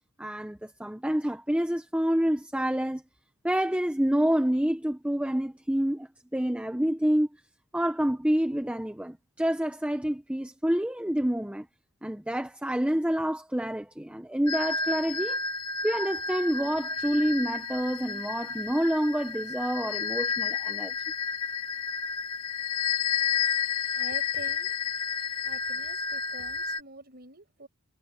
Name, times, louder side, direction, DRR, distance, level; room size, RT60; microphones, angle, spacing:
voice 1, 0.2-3.0 3.4-7.3 7.7-11.7 12.0-15.4 15.8-20.9, equal, 5° right, 0.8 m, -28 dB
sound 1, 14.5-26.8, left 6 dB, 85° left, 2.3 m, -31 dB
voice 2, 23.9-24.7 25.4-27.7, right 2 dB, 45° right, 7.3 m, -46 dB
head